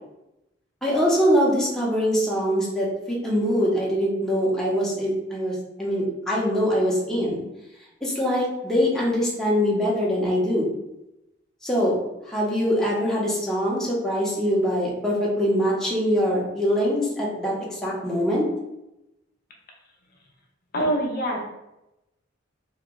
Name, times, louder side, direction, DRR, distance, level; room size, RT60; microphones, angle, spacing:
voice 1, 0.8-7.4 8.0-10.7 11.6-12.0 12.3-18.5, equal, 5° left, -5 dB, 0.8 m, -23 dB
voice 2, 20.7-21.4, right 1 dB, 50° left, 0 dB, 0.6 m, -24 dB
3.0 x 2.3 x 3.6 m, 0.90 s
head